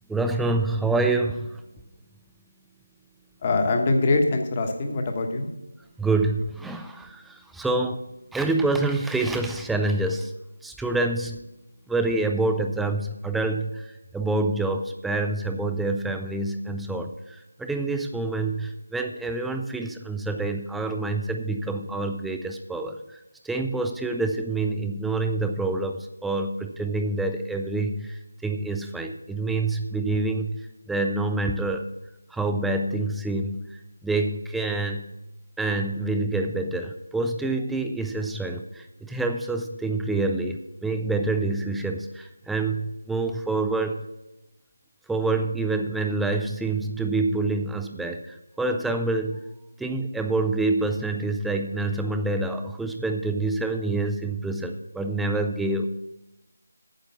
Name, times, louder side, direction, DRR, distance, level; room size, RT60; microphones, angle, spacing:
voice 1, 0.1-1.6 6.0-8.0 8.3-10.3 10.6-11.4 11.9-13.8 14.1-17.1 17.6-23.0 23.4-30.6 30.9-31.8 32.3-33.6 34.0-35.0 35.6-44.0 45.1-49.4 49.8-56.0, right 2 dB, ahead, 6 dB, 0.4 m, -27 dB
voice 2, 3.4-5.5, left 2 dB, 25° left, 4 dB, 1.2 m, -23 dB
9.1 x 7.3 x 7.0 m, 0.95 s
figure-of-eight pair, 165°, 0 cm